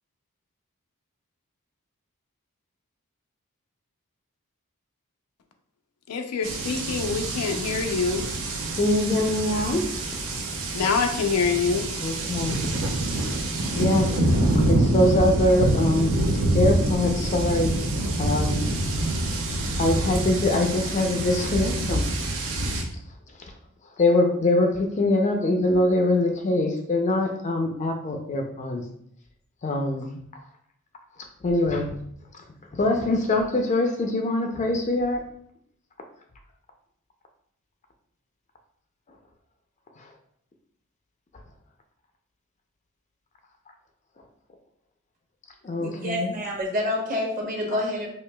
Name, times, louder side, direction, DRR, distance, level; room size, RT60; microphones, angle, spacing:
voice 1, 6.1-8.2 10.7-11.8, left 5 dB, 90° left, 5 dB, 0.5 m, -25 dB
sound 1, 6.4-22.8, right 1 dB, 65° right, 0.6 m, -26 dB
voice 2, 8.8-9.9 12.0-12.7 13.7-16.2 16.5-17.8 18.2-18.6 19.8-22.1 23.4-23.5 24.0-28.8 29.6-30.2 31.2-32.0 32.3-32.4 32.7-35.2 40.0-40.1 45.6-46.4 47.7-47.8, left 1 dB, 30° left, 4 dB, 0.4 m, -23 dB
voice 3, 45.8-48.1, left 1 dB, 40° right, -2 dB, 1.0 m, -28 dB
4.8 x 2.8 x 2.2 m, 0.68 s
head